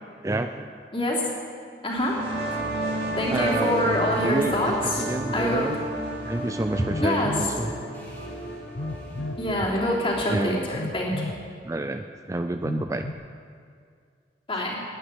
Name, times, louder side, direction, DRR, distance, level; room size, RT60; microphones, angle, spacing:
voice 1, 0.2-0.8 3.3-5.8 6.3-7.7 10.3-10.7 11.6-13.1, right 2 dB, 15° right, 7 dB, 0.4 m, -28 dB
voice 2, 0.9-1.2 1.8-2.2 3.2-5.0 5.3-5.7 7.0-7.4 9.4-11.3 14.5-14.8, left 1 dB, 30° left, -4 dB, 3.2 m, -26 dB
sound 1, 1.9-9.3, right 1 dB, 65° right, 3.6 m, -32 dB
sound 2, 2.6-10.2, right 1 dB, 10° left, 3.0 m, -42 dB
Telephone, 6.8-7.5 8.7-9.5 10.7-11.4 12.6-13.1, left 2 dB, 90° left, 1.0 m, -33 dB
12.0 x 9.1 x 9.7 m, 2.2 s
head